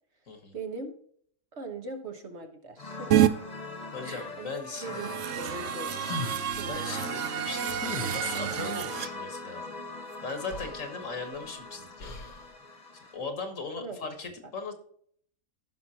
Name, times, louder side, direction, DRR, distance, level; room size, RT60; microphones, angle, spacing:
voice 1, 0.5-0.9 1.5-3.3 4.0-4.5 4.8-6.0 6.6-6.7 13.8-14.1, right 3 dB, 50° right, 4 dB, 1.4 m, -40 dB
sound 1, 2.8-13.2, left 3 dB, 30° left, 1.4 m, -41 dB
sound 2, 3.1-3.3 4.7-9.1, right 11 dB, 65° right, 0.8 m, -28 dB
voice 2, 3.9-5.0 6.7-7.8 8.1-9.6 10.2-12.4 13.1-14.7, left 4 dB, 60° left, 5 dB, 1.8 m, -38 dB
sound 3, 5.2-6.8 7.7-8.6 10.1-10.2 10.5-11.5 12.0-12.5, left 3 dB, 80° left, 1.7 m, -40 dB
15.5 x 5.8 x 2.9 m, 0.62 s
omnidirectional pair, 1.5 m